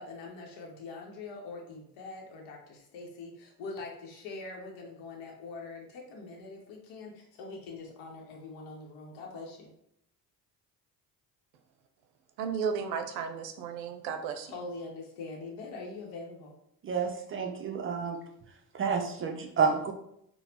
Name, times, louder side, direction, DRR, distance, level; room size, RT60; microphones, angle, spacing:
voice 1, 0.0-9.7 14.4-16.6, left 3 dB, 70° left, 0.8 m, -43 dB
voice 2, 12.4-14.5, right 6 dB, 90° right, 0.6 m, -34 dB
voice 3, 16.8-18.2 18.7-19.9, right 5 dB, 30° right, 0.3 m, -29 dB
3.9 x 2.1 x 2.8 m
supercardioid pair, 70°, 48 cm